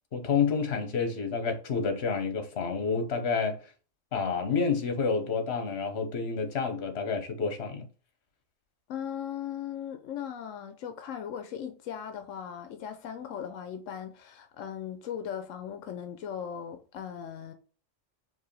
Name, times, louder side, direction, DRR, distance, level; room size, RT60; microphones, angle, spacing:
voice 1, 0.1-3.6 4.1-7.9, left 5 dB, 60° left, 1.3 m, -29 dB
voice 2, 8.9-17.5, left 8 dB, 90° left, 1.0 m, -38 dB
4.7 x 3.3 x 3.2 m
omnidirectional pair, 1.3 m